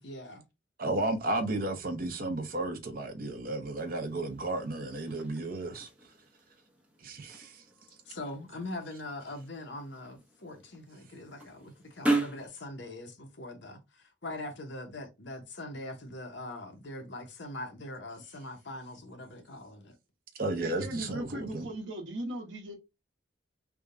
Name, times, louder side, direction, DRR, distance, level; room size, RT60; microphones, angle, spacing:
voice 1, 0.0-0.4 8.1-20.0, left 1 dB, 65° left, 0.9 m, -42 dB
voice 2, 0.8-5.9 7.0-7.6 20.4-21.7, right 2 dB, 50° right, 0.8 m, -33 dB
sound 1, 3.8-12.5, right 2 dB, 5° right, 0.7 m, -38 dB
voice 3, 20.6-22.8, right 1 dB, 75° right, 1.1 m, -38 dB
3.5 x 2.2 x 3.7 m
head